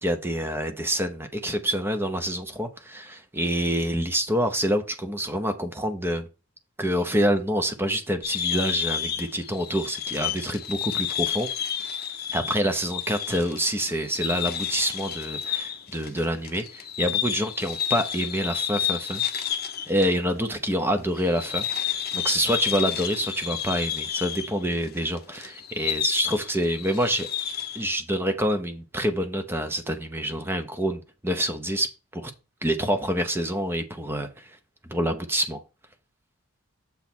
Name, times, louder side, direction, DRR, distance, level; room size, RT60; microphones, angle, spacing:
voice 1, 0.0-6.3 6.8-11.5 12.3-19.2 19.9-27.3 27.7-32.3 32.6-34.5 34.8-35.6, equal, 10° right, 0.7 m, -27 dB
sound 1, 8.2-20.1 20.4-20.5 21.2-27.8, left 9 dB, 45° left, 0.7 m, -30 dB
7.1 x 3.2 x 6.0 m
head